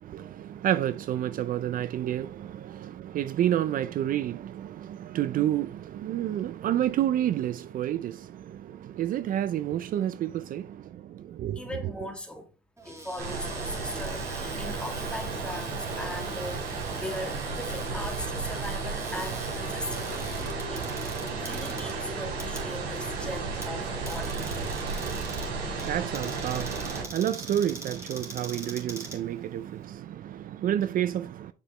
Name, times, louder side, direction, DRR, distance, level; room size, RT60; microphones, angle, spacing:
voice 1, 0.0-11.7 24.7-31.5, right 11 dB, 55° right, 0.5 m, -30 dB
voice 2, 11.6-12.4 12.8-20.2 20.7-20.9 21.3-24.9, left 1 dB, 5° left, 2.2 m, -39 dB
Cupboard open or close, 12.8-29.8, right 2 dB, 15° right, 3.2 m, -44 dB
sound 1, 13.2-27.0, right 4 dB, 85° right, 4.5 m, -33 dB
8.2 x 6.2 x 3.3 m
cardioid pair, 110°, 17 cm